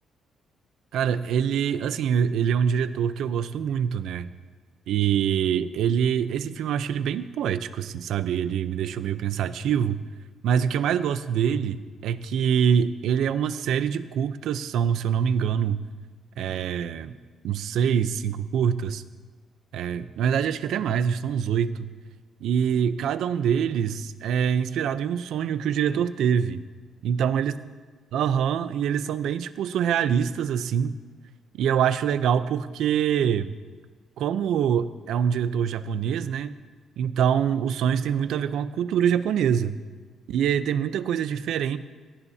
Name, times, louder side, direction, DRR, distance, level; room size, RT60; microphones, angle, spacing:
voice 1, 0.9-4.3 4.9-10.0 10.4-15.8 16.4-17.1 17.4-19.0 19.7-21.9 22.4-26.6 27.0-27.5 28.1-30.9 31.5-33.5 34.2-36.6 37.0-39.7 40.3-41.8, right 8 dB, 70° right, 12 dB, 0.6 m, -25 dB
22.5 x 18.0 x 2.8 m, 1.4 s
cardioid pair, 180°, 0 cm